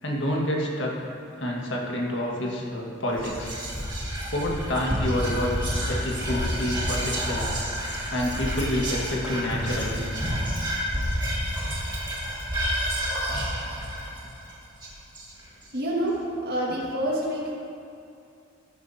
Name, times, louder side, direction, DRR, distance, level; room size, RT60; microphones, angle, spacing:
voice 1, 0.0-0.9 1.4-3.6 4.3-5.5 5.9-7.5 8.1-10.0, left 1 dB, 65° left, -2 dB, 1.7 m, -28 dB
Whispering, 3.1-15.6, equal, 20° right, 1.9 m, -29 dB
voice 2, 15.7-16.2 16.5-17.5, right 1 dB, 50° right, -4 dB, 1.9 m, -27 dB
15.0 x 9.4 x 2.8 m, 2.5 s
head